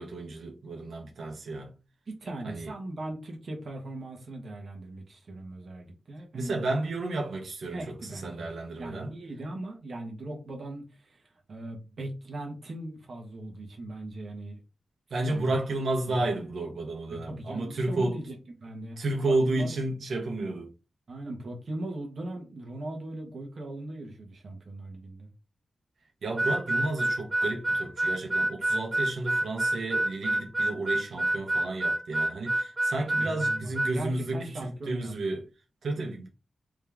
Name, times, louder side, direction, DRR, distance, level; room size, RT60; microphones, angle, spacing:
voice 1, 0.0-1.7 2.4-2.7 6.3-7.8 8.1-9.1 15.1-18.2 19.0-20.7 26.2-35.4 35.8-36.3, right 2 dB, 80° right, 1.2 m, -32 dB
voice 2, 2.1-6.6 7.7-8.5 8.8-14.6 15.3-15.6 16.1-16.2 17.1-19.7 21.1-25.3 33.2-35.4, right 1 dB, 50° right, 1.3 m, -39 dB
Harmonica, 26.4-34.0, right 1 dB, 15° right, 0.5 m, -27 dB
3.7 x 3.2 x 3.5 m
wide cardioid pair, 140°, 0 cm